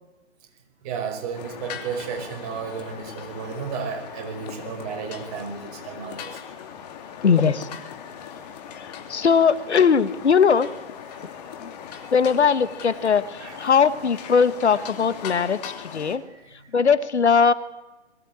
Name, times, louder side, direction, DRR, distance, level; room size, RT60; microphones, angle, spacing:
voice 1, 0.8-6.4 11.1-11.4 11.9-12.1 13.4-13.7 16.3-16.4, right 6 dB, 35° right, 4 dB, 5.3 m, -33 dB
sound 1, 1.3-16.2, left 8 dB, 35° left, 2.6 m, -39 dB
voice 2, 7.2-7.7 9.1-10.7 11.6-11.7 12.1-16.2 16.7-17.5, left 6 dB, 70° left, 15 dB, 1.4 m, -20 dB
22.0 x 17.0 x 8.8 m, 1.1 s
figure-of-eight pair, 135°, 35 cm